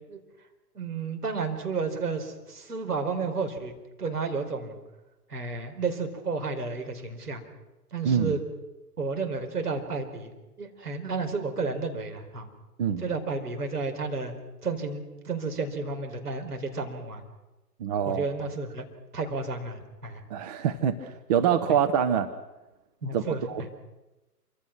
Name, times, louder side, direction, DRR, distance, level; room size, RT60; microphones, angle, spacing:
voice 1, 0.8-3.7 4.0-4.8 5.3-7.4 7.9-8.4 9.0-10.3 10.6-12.5 13.0-14.3 14.6-17.2 18.1-18.9 19.1-20.2 23.0-23.7, right 4 dB, 70° right, 4 dB, 5.0 m, -32 dB
voice 2, 8.0-8.4 12.8-13.0 17.8-18.2 20.3-22.3 23.1-23.6, right 8 dB, 25° right, 8 dB, 1.0 m, -25 dB
27.0 x 26.0 x 6.1 m, 1.0 s
figure-of-eight pair, 125°, 48 cm